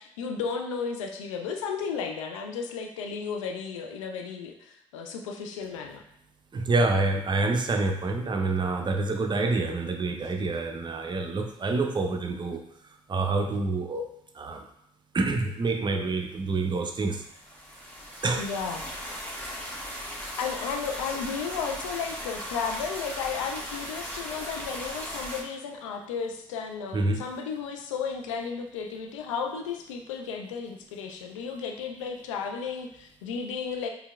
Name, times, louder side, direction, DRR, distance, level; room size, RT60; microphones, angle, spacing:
voice 1, 0.0-6.0 18.4-18.9 20.3-33.9, left 6 dB, 75° left, 3 dB, 0.4 m, -34 dB
voice 2, 6.5-12.6 13.1-14.0 14.3-14.6 15.1-17.2 18.2-18.4 26.9-27.2, right 3 dB, 30° right, 4 dB, 0.6 m, -27 dB
sound 1, 17.0-25.4, equal, 10° left, 1.3 m, -37 dB
4.4 x 3.3 x 2.3 m, 0.74 s
figure-of-eight pair, 45°, 16 cm